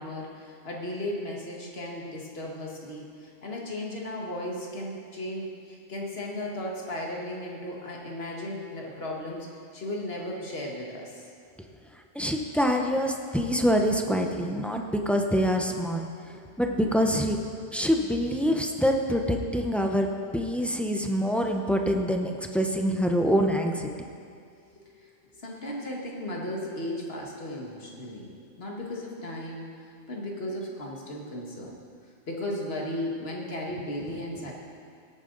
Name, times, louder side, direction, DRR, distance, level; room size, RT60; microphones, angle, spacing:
voice 1, 0.0-11.2 16.3-16.4 24.8-31.8 32.3-34.5, left 1 dB, 55° left, -2 dB, 1.9 m, -36 dB
voice 2, 12.1-16.1 16.6-17.4 17.7-20.1 20.3-23.9, equal, ahead, 2 dB, 0.5 m, -25 dB
17.0 x 8.9 x 3.9 m, 2.3 s
omnidirectional pair, 1.3 m